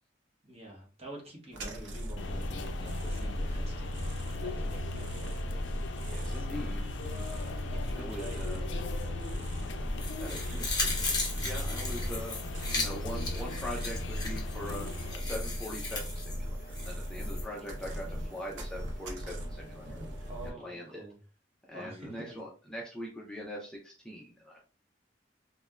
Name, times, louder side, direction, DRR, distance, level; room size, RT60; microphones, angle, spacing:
voice 1, 0.4-5.4 6.3-6.8 7.1-9.7 17.5-18.3 20.3-21.2 21.7-22.4, right 1 dB, 35° right, -2 dB, 1.0 m, -48 dB
sound 1, 1.5-20.5, equal, 75° right, 0.5 m, -38 dB
sound 2, 2.2-15.2, left 2 dB, 70° left, 0.4 m, -38 dB
voice 2, 6.0-6.9 7.9-8.6 10.2-10.7 11.4-12.4 12.7-21.0 21.7-24.6, equal, 5° left, -3 dB, 0.4 m, -42 dB
sound 3, 10.0-17.4 17.8-17.9, left 3 dB, 20° left, 0.8 m, -37 dB
3.2 x 2.1 x 2.3 m, 0.37 s
head